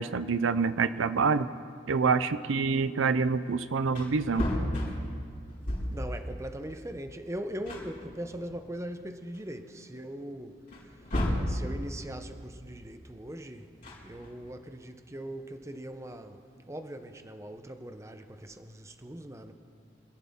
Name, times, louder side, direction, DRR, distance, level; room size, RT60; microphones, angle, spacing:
voice 1, 0.0-1.5 1.9-4.5, right 5 dB, 80° right, 0.5 m, -26 dB
Wood, 3.5-3.6 3.8-6.1 7.2-7.3 7.6-8.8 9.3-9.4 10.7-11.6 13.6-14.6, left 1 dB, 40° left, 4.3 m, -33 dB
voice 2, 5.9-10.6 11.5-13.7 14.0-19.5, right 1 dB, 15° right, 0.7 m, -40 dB
25.5 x 14.0 x 3.7 m
head